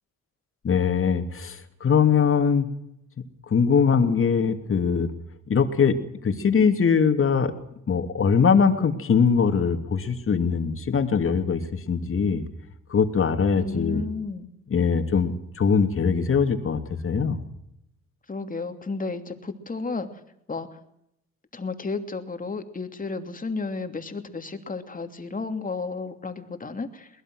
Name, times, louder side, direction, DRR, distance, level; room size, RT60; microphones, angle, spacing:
voice 1, 0.6-2.7 3.5-5.1 5.5-6.0 6.2-7.5 7.9-12.5 12.9-14.0 14.7-17.4, left 6 dB, 45° left, 7 dB, 2.8 m, -22 dB
voice 2, 13.5-14.5 18.3-20.1 20.5-20.7 21.5-27.1, left 3 dB, 25° left, 7 dB, 2.9 m, -32 dB
22.5 x 20.5 x 6.4 m, 0.78 s
cardioid pair, 90°, 30 cm